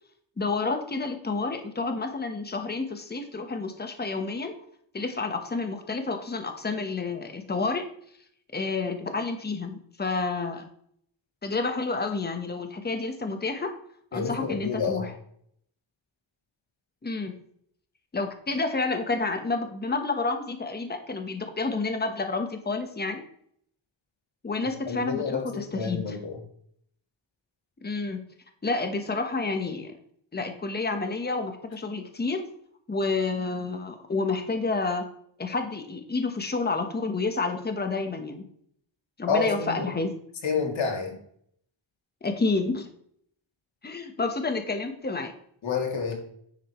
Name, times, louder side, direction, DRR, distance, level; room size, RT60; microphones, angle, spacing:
voice 1, 0.4-4.5 4.9-7.8 8.5-10.6 11.4-13.7 14.1-15.1 17.0-17.3 18.1-23.2 24.4-26.2 27.8-28.2 28.6-30.0 30.3-32.4 32.9-35.0 35.4-38.4 39.2-40.1 42.2-42.9 43.8-45.3, left 3 dB, 20° left, 6 dB, 1.3 m, -29 dB
voice 2, 14.1-15.0 24.9-26.2 39.3-39.8 40.4-41.2 45.6-46.1, left 5 dB, 75° left, 1 dB, 2.9 m, -28 dB
10.5 x 7.9 x 3.2 m, 0.65 s
wide cardioid pair, 135°, 47 cm